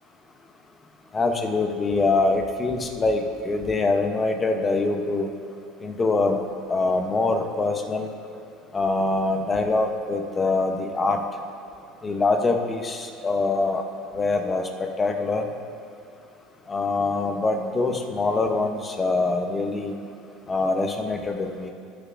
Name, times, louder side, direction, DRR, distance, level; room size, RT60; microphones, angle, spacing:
voice 1, 1.1-5.3 5.8-6.4 6.7-8.1 8.7-11.2 12.0-13.8 14.1-15.4 16.7-19.9 20.5-21.7, left 3 dB, 20° left, 5 dB, 0.8 m, -24 dB
18.0 x 6.8 x 2.5 m, 2.6 s
cardioid pair, 140°, 0 cm